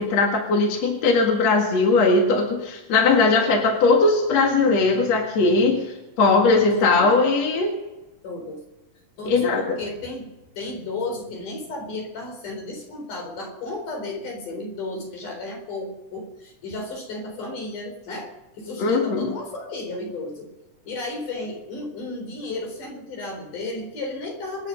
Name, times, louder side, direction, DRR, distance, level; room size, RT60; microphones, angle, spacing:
voice 1, 0.0-5.8 6.2-7.7 9.3-9.6 18.8-19.3, left 3 dB, 60° left, 1 dB, 3.1 m, -19 dB
voice 2, 6.7-7.1 8.2-8.6 9.2-20.5 20.9-24.7, left 2 dB, 85° left, 2 dB, 5.6 m, -33 dB
26.5 x 10.0 x 5.3 m, 1.0 s
omnidirectional pair, 3.5 m